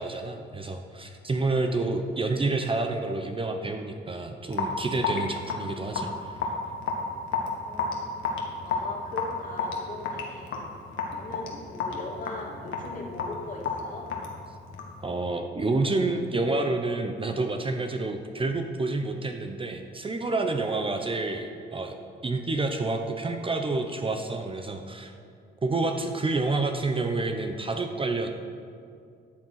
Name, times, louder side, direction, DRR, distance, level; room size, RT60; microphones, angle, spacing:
voice 1, 0.0-6.1 15.0-22.0 22.2-25.1 25.6-28.3, right 3 dB, 25° right, 5 dB, 0.8 m, -28 dB
Raindrop / Drip, 4.5-15.0, left 5 dB, 80° left, 1.7 m, -32 dB
voice 2, 7.7-8.1 8.6-10.6 11.1-14.1 15.8-15.9, left 2 dB, 40° left, -1 dB, 2.4 m, -40 dB
13.0 x 7.6 x 5.7 m, 2.4 s
cardioid pair, 90°, 20 cm